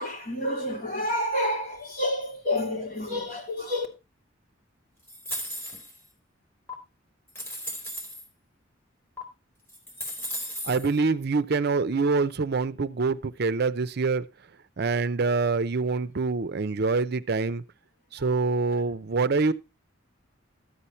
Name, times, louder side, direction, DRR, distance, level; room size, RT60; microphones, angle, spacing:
voice 1, 0.0-3.9, left 1 dB, 45° left, 3.2 m, -29 dB
sound 1, 5.1-6.1 6.7-6.8 7.3-8.2 9.2-9.3 9.7-10.9, equal, 10° left, 3.9 m, -35 dB
voice 2, 10.6-14.3 14.8-17.6 18.1-19.5, right 4 dB, 55° right, 0.5 m, -25 dB
13.0 x 8.5 x 4.3 m
head